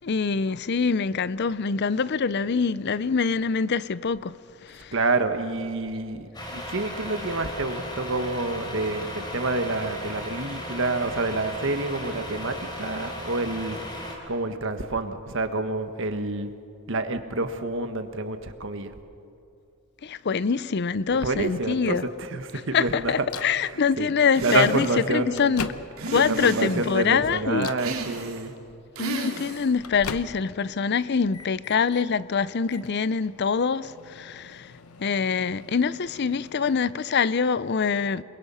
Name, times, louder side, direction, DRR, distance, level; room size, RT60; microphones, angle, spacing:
voice 1, 0.0-4.9 20.0-22.0 22.7-25.7 26.1-27.7 29.0-34.7 35.0-38.2, left 5 dB, 50° left, 0.5 m, -25 dB
voice 2, 4.9-13.8 14.3-16.5 16.9-18.9 21.1-23.1 23.6-24.1 24.4-25.6 26.1-28.5, right 2 dB, 60° right, 1.4 m, -28 dB
Truck, 6.3-14.2, left 1 dB, 20° left, 3.4 m, -36 dB
Microwave oven, 23.3-23.6 24.6-24.7 25.1-26.2 26.7-27.1 27.5-27.9 29.2-30.7 31.0-32.1 32.6-36.9, left 5 dB, 80° left, 0.9 m, -41 dB
sound 1, 24.3-25.1 26.0-27.0 27.8-28.5 29.0-29.7, right 3 dB, 80° right, 2.8 m, -33 dB
28.5 x 22.0 x 5.6 m
head